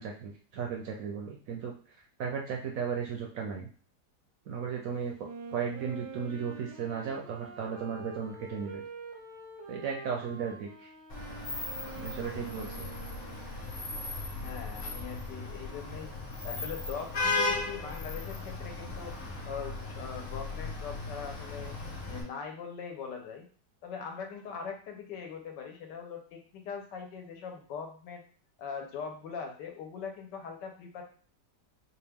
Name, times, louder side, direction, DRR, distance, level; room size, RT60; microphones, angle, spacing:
voice 1, 0.0-3.7 4.5-8.8 9.7-10.9 12.0-12.9, right 6 dB, 70° right, 1 dB, 0.8 m, -36 dB
Wind instrument woodwind instrument, 5.2-13.7, right 4 dB, 90° right, 1.4 m, -46 dB
Vehicle horn car horn honking / Traffic noise roadway noise, 11.1-22.2, left 3 dB, 45° left, 1.2 m, -36 dB
voice 2, 14.3-16.1 16.4-19.1 19.4-21.8 22.1-23.5 23.8-28.2 28.6-31.0, left 6 dB, 85° left, 3 dB, 1.4 m, -41 dB
4.3 x 2.3 x 3.4 m, 0.42 s
omnidirectional pair, 1.9 m